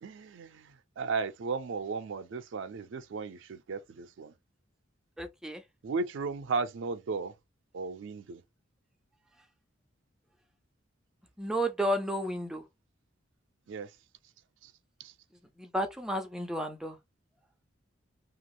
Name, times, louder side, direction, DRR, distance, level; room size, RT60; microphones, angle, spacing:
voice 1, 0.0-4.3 5.8-7.3 7.7-8.4 13.7-13.9 14.6-14.7 15.0-15.1, right 4 dB, 70° right, 0.4 m, -35 dB
voice 2, 5.2-5.6 11.4-12.6 15.6-17.0, equal, 5° right, 0.4 m, -32 dB
2.9 x 2.3 x 3.0 m
head